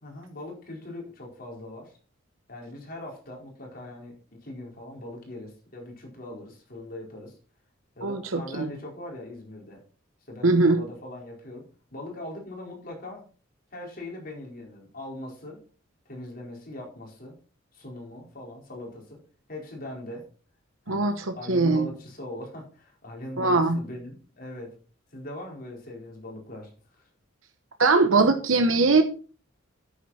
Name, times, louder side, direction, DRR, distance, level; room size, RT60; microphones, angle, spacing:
voice 1, 0.0-2.0 2.5-7.3 8.0-9.8 10.3-13.3 13.7-15.6 16.1-17.4 17.7-19.2 19.5-20.3 20.9-24.7 25.1-27.1, left 1 dB, 45° left, 0 dB, 4.6 m, -41 dB
voice 2, 8.0-8.7 10.4-10.8 20.9-21.9 23.4-23.8 27.8-29.0, right 3 dB, 85° right, 7 dB, 1.0 m, -21 dB
9.5 x 9.3 x 4.3 m, 0.37 s
head